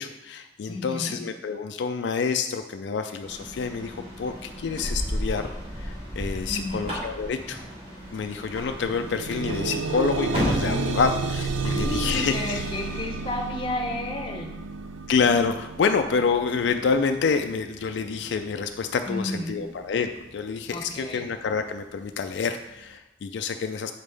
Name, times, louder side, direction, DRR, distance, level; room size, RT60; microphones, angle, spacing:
voice 1, 0.0-5.5 5.8-7.6 8.1-12.6 15.1-23.9, left 5 dB, 70° left, 6 dB, 0.3 m, -27 dB
voice 2, 0.7-1.2 6.5-6.9 10.6-11.0 11.6-14.6 19.1-19.6 20.7-21.3, left 1 dB, 25° left, 2 dB, 0.8 m, -32 dB
sound 1, 3.2-13.0, equal, 30° right, 1.5 m, -34 dB
sound 2, 8.0-8.2 8.5-19.5 20.3-20.4 20.9-21.0, right 4 dB, 85° right, 0.5 m, -32 dB
7.2 x 5.3 x 3.3 m, 0.95 s
head